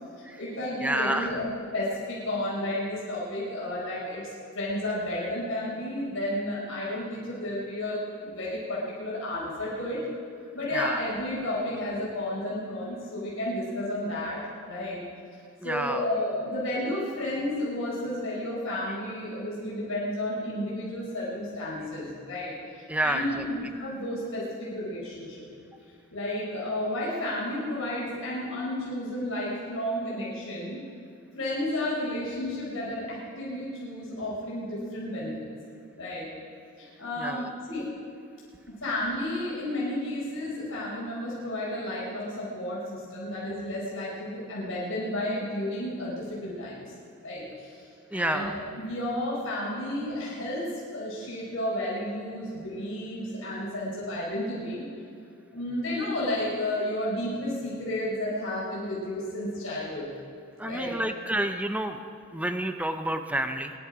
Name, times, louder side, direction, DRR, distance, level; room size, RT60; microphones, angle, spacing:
voice 1, 0.1-4.2 4.5-10.0 10.5-15.0 15.6-22.6 23.0-25.4 26.1-30.8 31.3-35.5 36.0-36.3 36.8-37.9 38.7-46.8 47.2-47.7 48.1-54.8 55.5-60.1 60.6-61.0, left 1 dB, 65° left, -7 dB, 4.7 m, -32 dB
voice 2, 0.8-1.4 10.7-11.0 15.6-16.0 22.9-23.4 37.2-37.5 48.1-48.5 60.6-62.0 62.3-63.7, right 1 dB, 5° right, 7 dB, 0.6 m, -29 dB
22.5 x 11.5 x 5.0 m, 2.5 s
head